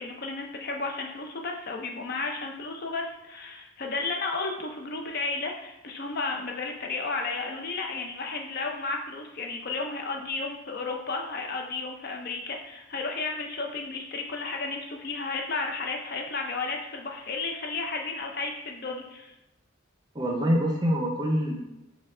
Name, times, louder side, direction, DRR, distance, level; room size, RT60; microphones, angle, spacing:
voice 1, 0.0-19.3, left 3 dB, 50° left, 2 dB, 0.5 m, -33 dB
voice 2, 20.1-21.6, equal, 20° right, 0 dB, 0.5 m, -25 dB
4.5 x 2.3 x 3.6 m, 0.96 s
head